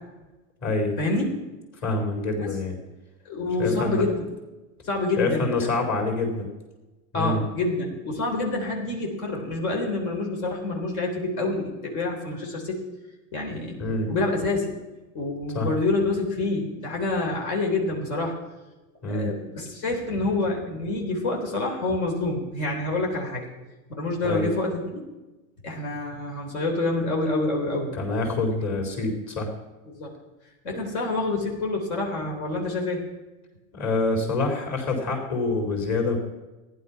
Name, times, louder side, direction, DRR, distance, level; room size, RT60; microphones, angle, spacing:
voice 1, 0.6-0.9 1.8-2.8 3.6-4.0 5.2-6.5 7.1-7.4 13.8-14.1 15.5-15.7 19.0-19.3 24.2-24.5 27.9-29.5 33.7-36.2, left 3 dB, 40° left, 2 dB, 4.1 m, -26 dB
voice 2, 3.3-4.1 4.8-5.7 7.1-12.8 13.3-13.8 14.1-14.7 15.1-18.3 19.1-23.4 23.9-25.0 25.6-28.0 29.9-30.1 30.6-33.0, left 2 dB, 75° left, 0 dB, 3.6 m, -27 dB
14.5 x 11.0 x 5.7 m, 1.1 s
supercardioid pair, 125°, 43 cm